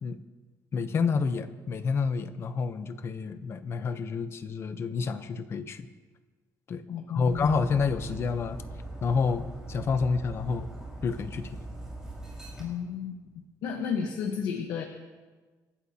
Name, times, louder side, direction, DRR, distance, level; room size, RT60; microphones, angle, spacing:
voice 1, 0.7-5.9 6.7-6.8 7.1-8.6 9.0-10.7 11.0-11.5, left 5 dB, 35° left, 10 dB, 0.8 m, -29 dB
voice 2, 6.9-7.5 12.6-13.2 13.6-14.8, left 7 dB, 80° left, 3 dB, 1.2 m, -32 dB
Dog, 7.3-12.6, right 2 dB, 10° right, 4.4 m, -41 dB
28.5 x 12.5 x 2.9 m, 1.3 s
cardioid pair, 170°, 7 cm